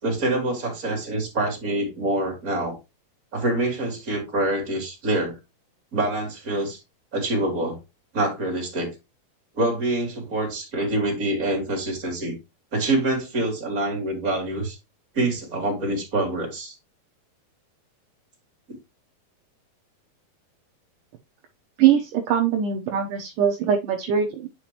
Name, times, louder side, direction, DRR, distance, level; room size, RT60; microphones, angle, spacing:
voice 1, 0.0-2.7 3.3-5.4 5.9-6.8 7.1-7.8 8.1-8.9 9.5-12.3 12.7-14.8 15.1-16.7, right 1 dB, 25° right, 3.4 m, -25 dB
voice 2, 21.8-24.5, right 8 dB, 70° right, 2.3 m, -22 dB
10.5 x 5.0 x 2.9 m
omnidirectional pair, 4.3 m